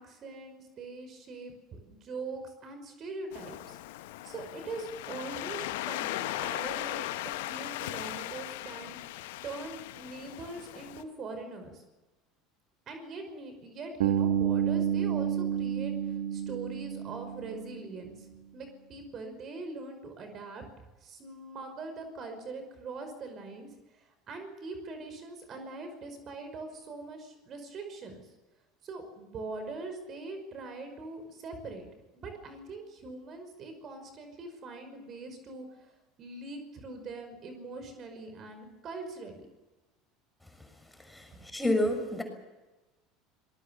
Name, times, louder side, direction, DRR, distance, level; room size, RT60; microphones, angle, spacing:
voice 1, 0.0-3.8 4.2-11.8 12.9-18.3 18.5-20.6 21.0-23.7 23.9-28.3 28.8-31.9 32.1-39.5 41.3-41.5, right 3 dB, 40° right, 7 dB, 5.5 m, -42 dB
Waves surf, 3.3-11.0, left 16 dB, 65° left, 1.3 m, -38 dB
Bass guitar, 14.0-18.0, right 9 dB, 70° right, 2.0 m, -30 dB
voice 2, 41.5-42.2, left 1 dB, 5° left, 5 dB, 6.5 m, -28 dB
26.5 x 21.0 x 7.2 m, 1.1 s
figure-of-eight pair, 70°, 0 cm